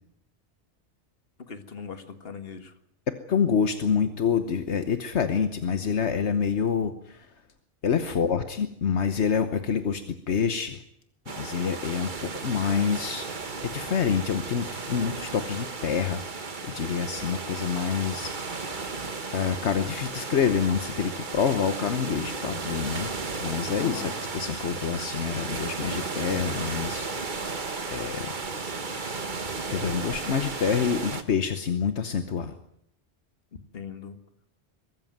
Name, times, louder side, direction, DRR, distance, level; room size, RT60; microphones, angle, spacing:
voice 1, 1.5-2.7 8.0-8.2 23.8-24.1 33.7-34.2, left 6 dB, 60° left, 9 dB, 1.9 m, -39 dB
voice 2, 3.3-7.2 7.8-10.8 11.4-13.3 13.6-16.2 16.6-18.6 19.3-23.1 23.4-28.3 29.7-32.5, left 6 dB, 75° left, 9 dB, 1.4 m, -27 dB
sound 1, 11.3-31.2, right 4 dB, 45° right, 1.5 m, -34 dB
22.5 x 14.0 x 9.3 m, 0.75 s
omnidirectional pair, 1.2 m